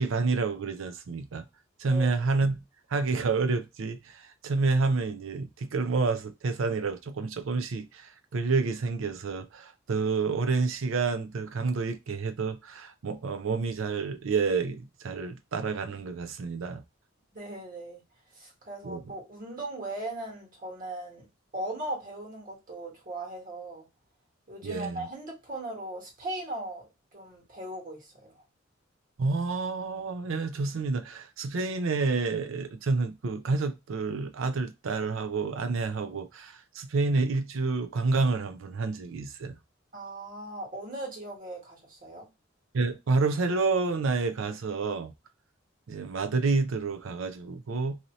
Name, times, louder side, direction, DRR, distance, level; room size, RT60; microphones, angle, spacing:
voice 1, 0.0-1.5 1.8-2.5 2.9-4.0 4.4-16.8 18.8-19.0 24.6-25.0 29.2-39.6 42.7-45.1 45.9-48.0, right 4 dB, 80° right, 0.5 m, -29 dB
voice 2, 1.8-2.1 17.3-18.0 18.3-21.3 21.5-23.9 24.5-28.4 39.9-42.3, right 1 dB, 45° right, 1.5 m, -38 dB
2.8 x 2.7 x 3.0 m
head